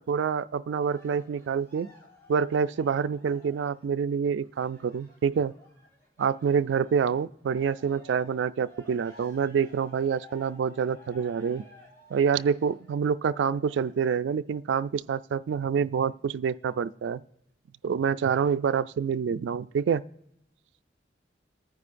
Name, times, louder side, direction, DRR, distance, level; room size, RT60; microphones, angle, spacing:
voice 1, 0.0-1.9 2.3-5.5 6.2-11.6 12.1-17.2 17.8-20.0, right 6 dB, 85° right, 14 dB, 0.3 m, -27 dB
Cheering, 0.7-7.0 7.4-14.0 14.6-14.7, left 1 dB, 15° left, 3.9 m, -55 dB
26.5 x 9.5 x 2.5 m, 0.85 s
head